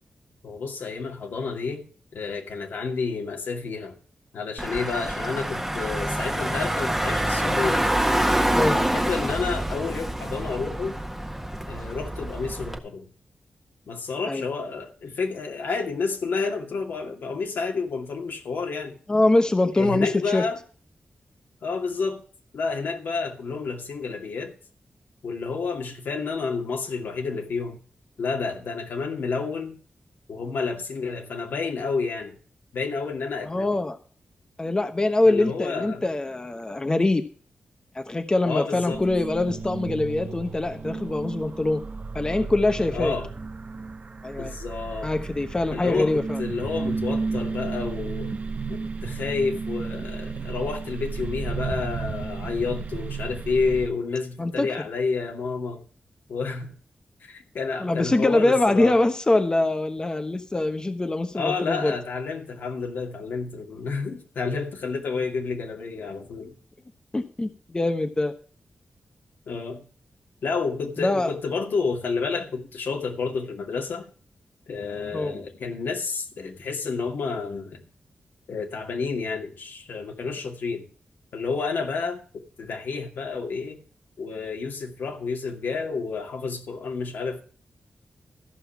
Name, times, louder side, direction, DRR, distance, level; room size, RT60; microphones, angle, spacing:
voice 1, 0.4-1.9 2.1-3.9 4.3-7.9 8.7-11.0 11.7-13.1 13.9-19.0 19.8-20.6 21.6-22.2 22.5-24.5 25.2-27.8 28.2-29.8 30.3-32.4 32.7-33.8 35.3-36.1 38.4-39.0 42.9-43.3 44.4-45.1 45.7-48.3 48.7-55.8 56.3-56.8 57.3-58.9 61.3-66.5 69.5-69.9 70.4-74.1 74.7-77.8 78.5-80.9 81.3-83.8 84.2-87.4, left 4 dB, 85° left, 2.4 m, -30 dB
Car / Engine, 4.6-12.8, right 1 dB, 5° right, 1.4 m, -26 dB
voice 2, 19.1-20.4 33.5-34.0 34.6-37.2 37.9-41.8 42.1-43.1 44.2-44.5 45.0-46.4 54.4-54.7 57.8-61.9 67.1-68.3 71.0-71.3 75.1-75.4, left 2 dB, 25° left, 1.1 m, -23 dB
sound 1, 38.9-53.9, right 4 dB, 50° right, 1.1 m, -33 dB
14.0 x 5.5 x 7.2 m
cardioid pair, 85°, 3 cm